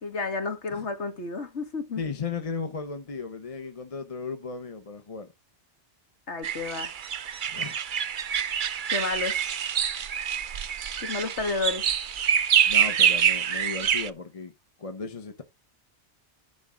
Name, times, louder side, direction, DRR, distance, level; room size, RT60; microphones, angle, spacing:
voice 1, 0.0-2.0 6.3-6.9 8.9-9.5 11.0-11.9, left 4 dB, 80° left, 2.1 m, -31 dB
voice 2, 2.0-5.3 7.5-7.8 12.7-14.5 14.8-15.4, left 5 dB, 35° left, 1.0 m, -35 dB
sound 1, 6.4-14.1, right 8 dB, 50° right, 0.8 m, -26 dB
11.0 x 3.9 x 6.2 m
omnidirectional pair, 1.1 m